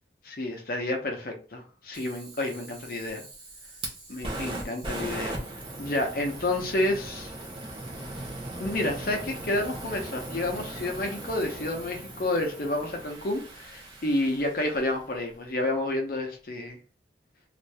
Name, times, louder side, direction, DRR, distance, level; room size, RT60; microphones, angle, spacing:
voice 1, 0.2-3.3 4.1-5.4 5.8-7.3 8.6-16.8, left 1 dB, 50° left, 3 dB, 0.7 m, -30 dB
Fire, 1.9-15.1, right 1 dB, 30° right, 0.7 m, -39 dB
2.7 x 2.5 x 3.3 m, 0.37 s
head